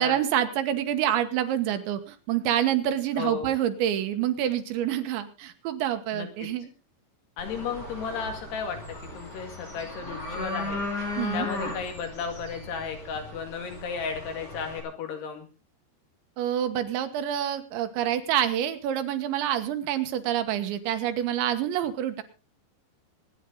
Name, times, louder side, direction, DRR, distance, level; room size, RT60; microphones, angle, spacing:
voice 1, 0.0-6.7 11.2-11.5 16.4-22.2, right 11 dB, 90° right, 8 dB, 3.6 m, -27 dB
voice 2, 3.1-3.5 6.1-6.5 7.4-10.8 11.3-15.5, left 6 dB, 70° left, 5 dB, 4.1 m, -34 dB
sound 1, 7.4-14.8, left 2 dB, 20° left, 5.2 m, -36 dB
23.5 x 9.8 x 3.8 m, 0.32 s
omnidirectional pair, 5.1 m